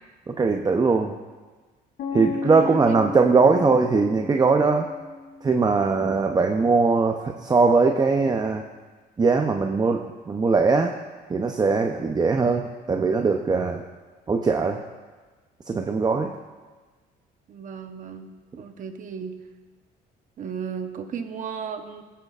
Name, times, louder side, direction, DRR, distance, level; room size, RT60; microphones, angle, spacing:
voice 1, 0.3-1.2 2.1-4.9 5.4-8.6 9.2-10.9 11.3-13.8 14.3-14.8 15.7-16.3, right 4 dB, 25° right, 4 dB, 0.7 m, -21 dB
sound 1, 2.0-5.9, left 4 dB, 70° left, 2.9 m, -34 dB
voice 2, 2.4-3.0 17.5-19.4 20.4-22.0, right 7 dB, 50° right, 7 dB, 1.0 m, -35 dB
19.0 x 10.0 x 2.5 m, 1.4 s
cardioid pair, 110°, 17 cm